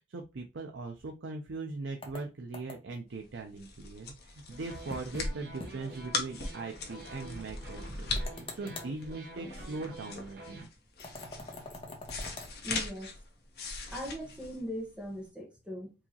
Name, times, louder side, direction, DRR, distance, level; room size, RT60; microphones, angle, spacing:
voice 1, 0.1-10.7, right 3 dB, 80° right, 0.5 m, -40 dB
sound 1, 2.0-3.0 4.9-5.3 5.6-5.7 6.1-6.2 8.2-8.9 11.0-12.5, left 2 dB, 30° left, 0.8 m, -44 dB
sound 2, 3.2-15.2, left 3 dB, 55° left, 0.9 m, -40 dB
sound 3, 4.5-10.7, right 1 dB, 55° right, 0.9 m, -48 dB
voice 2, 12.6-13.1 13.9-15.9, equal, 5° right, 1.0 m, -39 dB
4.7 x 2.9 x 2.8 m
head